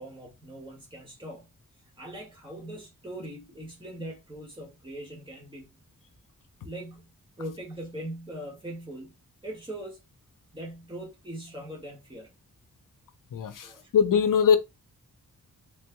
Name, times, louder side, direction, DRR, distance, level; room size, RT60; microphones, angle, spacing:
voice 1, 0.0-1.5 2.0-5.7 6.6-7.1 7.4-9.1 9.4-10.0 10.5-12.3 13.6-13.9, right 1 dB, 15° right, 1.5 m, -41 dB
voice 2, 13.3-14.6, left 7 dB, 75° left, 0.6 m, -22 dB
3.2 x 3.2 x 2.2 m
wide cardioid pair, 155°, 32 cm